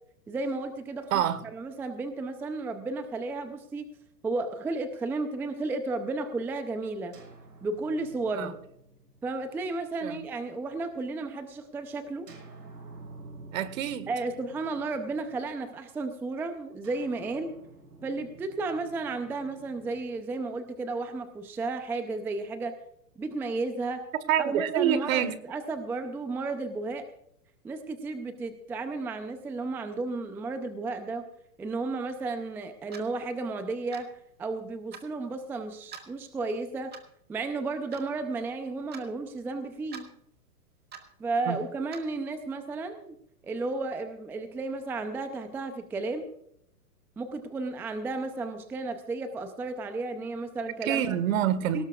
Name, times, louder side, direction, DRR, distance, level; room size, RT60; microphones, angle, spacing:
voice 1, 0.3-1.2 1.5-3.9 4.2-7.2 7.6-8.6 9.2-12.3 14.1-17.5 18.0-22.8 23.2-24.0 24.4-27.1 27.6-31.3 31.6-34.1 34.4-36.9 37.3-40.1 41.2-43.2 43.4-46.3 47.2-51.2 51.7-51.8, right 3 dB, 5° right, 0.5 m, -33 dB
voice 2, 1.1-1.4 8.3-8.5 10.0-10.2 13.5-14.1 24.3-25.4 41.5-41.6 50.8-51.9, right 10 dB, 55° right, 1.7 m, -27 dB
sound 1, 7.1-10.9 12.3-15.8 16.8-21.0, right 2 dB, 75° right, 7.0 m, -51 dB
Clock, 32.9-33.1 33.9-34.1 34.9-35.1 35.9-36.1 36.9-37.2 37.9-38.1 38.9-39.1 39.9-40.1 40.9-41.1 41.9-42.1, right 7 dB, 20° right, 1.9 m, -44 dB
18.5 x 18.0 x 2.4 m
hypercardioid pair, 125°, 48 cm